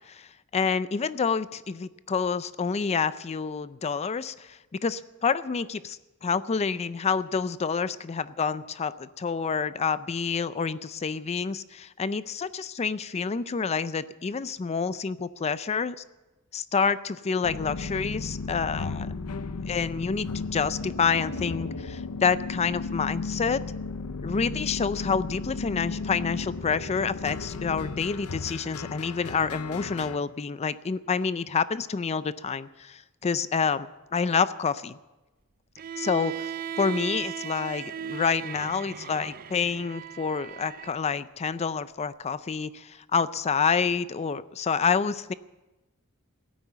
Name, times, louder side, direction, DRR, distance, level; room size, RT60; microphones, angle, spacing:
voice 1, 0.1-16.0 16.5-19.1 19.7-23.6 24.2-33.9 34.1-35.0 36.0-36.5 36.8-45.3, left 5 dB, 30° left, 16 dB, 0.4 m, -28 dB
sound 1, 17.4-30.2, left 4 dB, 85° left, 0.7 m, -35 dB
Bowed string instrument, 35.8-41.0, right 8 dB, 40° right, 0.4 m, -37 dB
16.0 x 9.6 x 8.0 m, 1.1 s
head